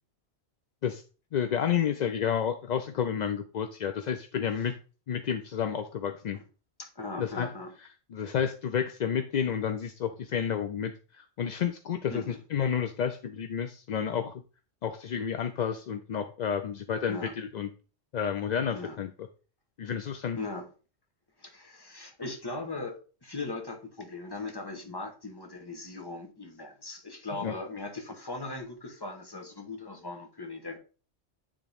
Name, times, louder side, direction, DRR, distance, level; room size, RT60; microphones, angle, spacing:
voice 1, 1.3-4.7 5.1-6.4 7.2-7.5 8.1-14.3 14.8-17.7 18.1-19.1 19.8-20.4 27.4-27.5, left 8 dB, 60° left, 0.5 m, -30 dB
voice 2, 6.8-7.7 12.1-12.4 17.1-17.3 18.7-19.0 20.4-20.7 21.4-30.8, left 3 dB, 20° left, 1.1 m, -39 dB
9.5 x 3.6 x 3.4 m
omnidirectional pair, 1.1 m